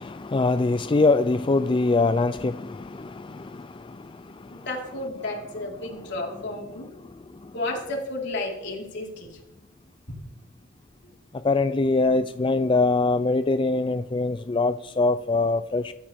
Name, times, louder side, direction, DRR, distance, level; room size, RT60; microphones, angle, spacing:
voice 1, 0.0-4.1 11.4-15.9, left 3 dB, 25° left, 0.4 m, -23 dB
voice 2, 4.5-6.9 7.5-9.4, left 2 dB, 65° left, 4.6 m, -32 dB
24.5 x 13.5 x 3.6 m
head